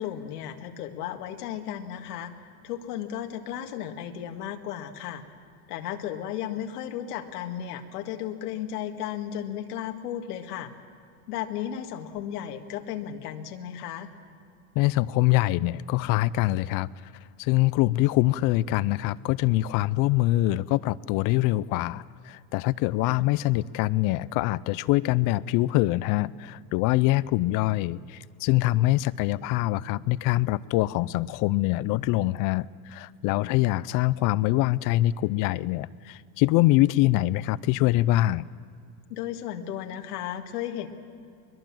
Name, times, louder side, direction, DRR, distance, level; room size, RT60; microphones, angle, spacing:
voice 1, 0.0-5.2 5.7-10.7 11.3-14.1 23.1-23.2 33.3-33.6 39.1-40.9, left 10 dB, 90° left, 4 dB, 1.9 m, -34 dB
voice 2, 14.8-16.9 17.4-38.5, left 17 dB, 45° left, 20 dB, 0.5 m, -24 dB
22.0 x 21.5 x 7.5 m, 2.4 s
supercardioid pair, 135°, 45 cm